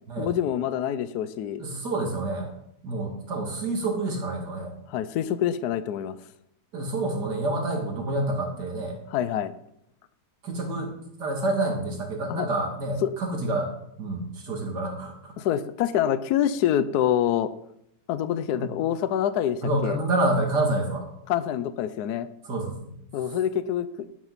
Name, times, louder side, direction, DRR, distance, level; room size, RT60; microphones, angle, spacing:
voice 1, 0.2-1.6 4.9-6.2 9.1-9.5 12.3-12.5 13.0-13.1 15.4-17.5 18.1-20.0 21.3-22.3 23.1-24.1, left 10 dB, 70° left, 14 dB, 1.2 m, -26 dB
voice 2, 1.6-2.5 2.8-4.7 6.7-9.0 10.4-13.7 14.0-15.3 18.5-18.7 19.6-21.1 22.4-22.9, right 2 dB, 75° right, 1 dB, 3.1 m, -28 dB
11.5 x 11.0 x 4.1 m, 0.74 s
omnidirectional pair, 1.8 m